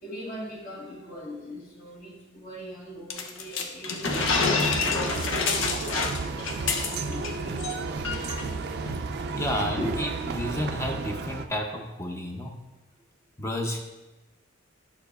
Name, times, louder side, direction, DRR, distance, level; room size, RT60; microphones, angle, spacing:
voice 1, 0.0-6.2 6.8-8.2 8.8-9.1 9.8-9.9, equal, 40° left, -5 dB, 1.2 m, -40 dB
sound 1, 3.1-7.3 7.6-7.7 8.0-8.4, left 4 dB, 65° left, 0.6 m, -27 dB
sound 2, 4.0-11.5, right 4 dB, 50° right, 0.4 m, -32 dB
voice 2, 9.3-12.6 13.4-13.9, equal, 15° left, 2 dB, 0.5 m, -31 dB
8.0 x 6.8 x 2.3 m, 1.1 s
head